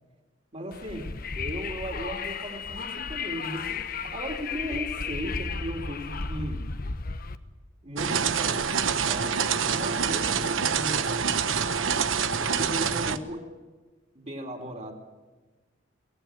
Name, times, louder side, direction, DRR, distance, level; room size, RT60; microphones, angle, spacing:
voice 1, 0.5-6.6 7.8-11.8 12.4-13.5 14.2-14.9, equal, 35° right, 1 dB, 3.5 m, -37 dB
Wind, 0.7-7.4, left 4 dB, 50° left, 1.1 m, -34 dB
sound 1, 8.0-13.2, right 6 dB, 90° right, 1.2 m, -26 dB
23.5 x 18.0 x 9.0 m, 1.2 s
head